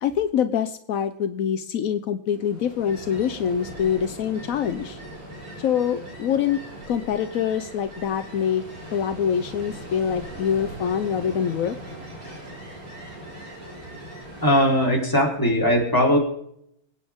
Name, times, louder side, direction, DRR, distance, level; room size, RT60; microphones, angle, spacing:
voice 1, 0.0-5.0 5.6-8.6 8.9-11.8, left 8 dB, 75° left, 11 dB, 0.8 m, -25 dB
Ocean, 2.3-15.1, right 1 dB, 80° right, 6.5 m, -40 dB
voice 2, 14.4-16.2, equal, 10° left, -2 dB, 3.9 m, -19 dB
24.0 x 9.3 x 3.6 m, 0.71 s
omnidirectional pair, 2.3 m